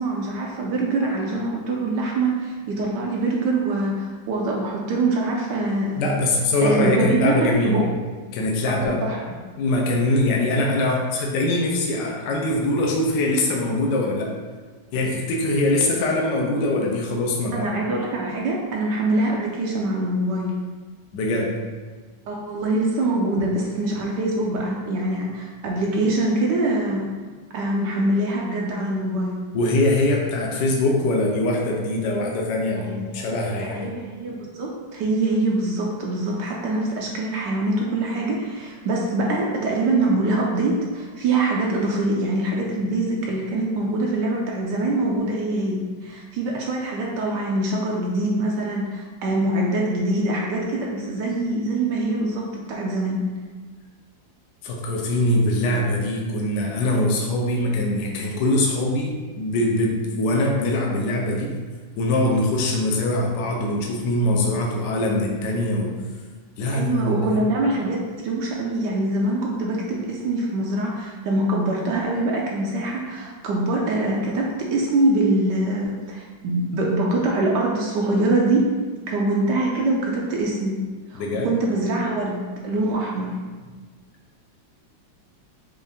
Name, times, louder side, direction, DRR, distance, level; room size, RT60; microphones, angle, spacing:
voice 1, 0.0-6.1 6.6-7.9 8.8-9.3 17.5-20.5 22.3-27.1 27.5-29.4 33.1-33.2 33.6-53.2 66.7-78.7 79.1-80.8 81.1-83.4, right 2 dB, 75° right, -2 dB, 1.1 m, -24 dB
voice 2, 6.0-7.9 8.3-9.0 9.6-14.3 14.9-17.7 21.1-21.5 29.5-33.9 54.6-61.6 62.0-66.0 66.6-67.4 81.2-81.5 82.7-82.8, left 1 dB, 70° left, -1 dB, 1.2 m, -22 dB
5.4 x 2.5 x 3.4 m, 1.4 s
omnidirectional pair, 2.1 m